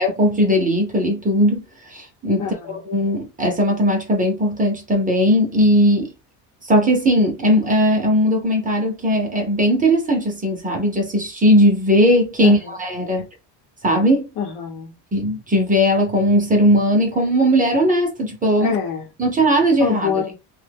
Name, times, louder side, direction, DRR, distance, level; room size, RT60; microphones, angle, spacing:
voice 1, 0.0-2.4 2.9-6.1 6.7-13.3 13.8-14.3 15.1-18.7 19.2-20.1, equal, 15° right, 0.8 m, -18 dB
voice 2, 2.4-2.8 12.4-12.7 13.2-13.3 14.4-14.9 18.6-19.1 19.8-20.4, left 7 dB, 55° left, 0.9 m, -26 dB
2.7 x 2.3 x 3.4 m
cardioid pair, 135°, 47 cm